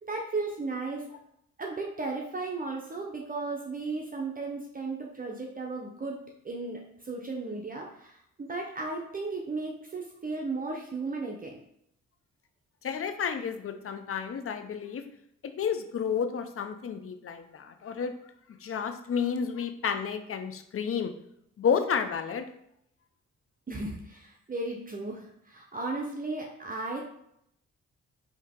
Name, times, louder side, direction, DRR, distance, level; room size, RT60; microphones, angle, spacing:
voice 1, 0.1-1.1 1.6-6.2 6.4-11.6 23.7-27.0, right 3 dB, 30° right, 0 dB, 0.8 m, -35 dB
voice 2, 12.8-15.1 15.4-18.1 18.6-21.1 21.6-22.5, left 7 dB, 50° left, 8 dB, 0.6 m, -31 dB
4.5 x 2.9 x 3.6 m, 0.74 s
supercardioid pair, 60°, 29 cm